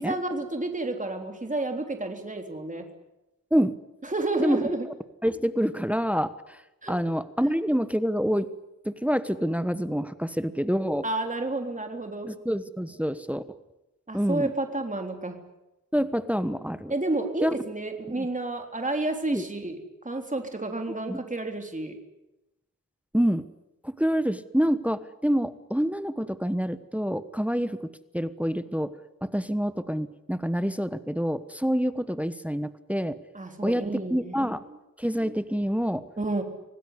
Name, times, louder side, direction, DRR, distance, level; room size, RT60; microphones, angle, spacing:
voice 1, 0.0-2.9 4.0-4.9 6.8-6.9 11.0-12.3 14.1-15.4 16.9-19.8 20.0-22.0 33.3-34.4 36.2-36.4, right 2 dB, 25° right, 4 dB, 3.5 m, -30 dB
voice 2, 5.2-6.6 6.9-8.5 8.8-11.0 12.3-13.4 14.1-14.5 15.9-16.9 17.4-17.5 18.1-18.3 19.3-19.4 21.1-21.2 23.1-23.4 23.8-27.8 28.1-28.9 29.2-33.2 33.6-34.6 35.0-36.0, equal, 5° right, 12 dB, 1.1 m, -27 dB
26.5 x 18.5 x 9.9 m, 0.94 s
wide cardioid pair, 90°, 33 cm